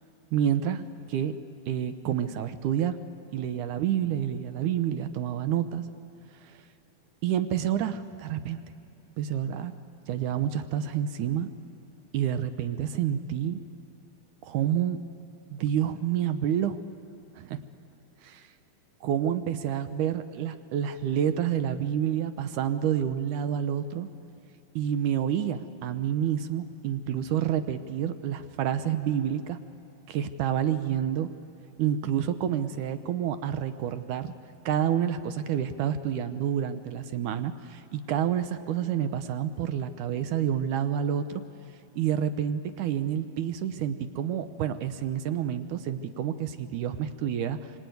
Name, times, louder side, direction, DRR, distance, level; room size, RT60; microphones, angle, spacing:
voice 1, 0.3-1.4 1.7-3.0 3.3-5.8 6.4-6.6 7.2-8.6 9.2-9.7 10.1-11.5 12.1-13.6 14.4-15.0 15.5-16.8 17.4-17.6 18.2-18.5 19.0-24.1 24.8-29.6 30.1-31.3 31.8-34.3 34.7-41.4 42.0-47.7, right 9 dB, 75° right, 10 dB, 2.0 m, -28 dB
25.5 x 24.5 x 9.4 m, 2.7 s
omnidirectional pair, 4.4 m